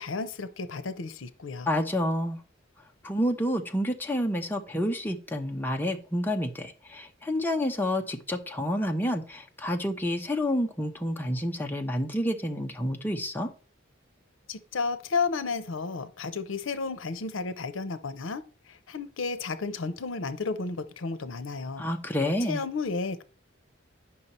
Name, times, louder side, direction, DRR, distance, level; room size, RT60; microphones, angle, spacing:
voice 1, 0.0-1.7 14.5-21.8 22.5-23.2, left 4 dB, 80° left, 0.7 m, -32 dB
voice 2, 1.7-2.4 3.0-13.5 21.8-22.6, equal, 10° left, 0.8 m, -29 dB
9.5 x 5.8 x 4.2 m
head